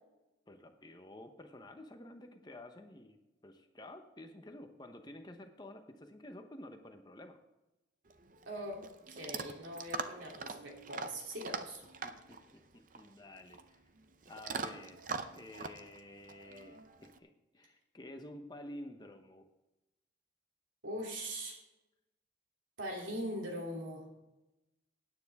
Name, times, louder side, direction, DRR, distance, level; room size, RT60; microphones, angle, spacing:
voice 1, 0.5-3.2 3.4-7.4 12.0-13.8 14.3-15.0 15.3-19.5, left 1 dB, 20° left, 6 dB, 0.9 m, -51 dB
Chewing mastication / Dog, 8.1-17.2, right 4 dB, 40° right, 0.6 m, -44 dB
voice 2, 8.5-8.8 9.1-11.8 20.8-21.6 22.8-24.0, equal, 80° right, 0 dB, 3.0 m, -41 dB
16.5 x 9.5 x 3.5 m, 0.97 s
head